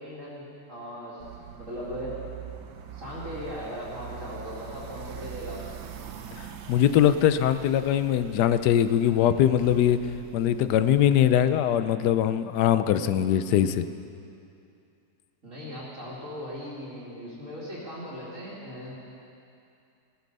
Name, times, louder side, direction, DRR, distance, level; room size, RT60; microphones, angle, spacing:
voice 1, 0.0-2.2 2.9-5.6 15.4-18.9, equal, 45° right, -9 dB, 3.0 m, -38 dB
sound 1, 1.2-11.6, right 8 dB, 85° right, 1.5 m, -43 dB
voice 2, 6.4-10.0 10.3-13.8, left 10 dB, 80° left, 12 dB, 1.2 m, -22 dB
16.0 x 13.0 x 5.4 m, 2.6 s
omnidirectional pair, 1.8 m